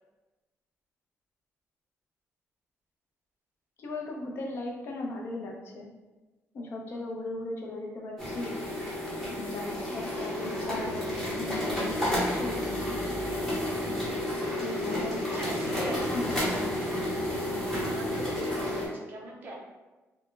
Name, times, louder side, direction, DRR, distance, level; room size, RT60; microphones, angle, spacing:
voice 1, 3.8-5.9 6.5-8.6 9.4-12.6 14.6-15.5 15.8-16.7, left 2 dB, 45° left, 0 dB, 0.4 m, -37 dB
sound 1, 8.2-18.9, left 1 dB, 5° left, 0.7 m, -31 dB
voice 2, 15.3-16.0 16.8-17.1 17.7-19.6, right 1 dB, 35° right, -2 dB, 0.5 m, -42 dB
2.0 x 2.0 x 3.1 m, 1.1 s
cardioid pair, 170°, 5 cm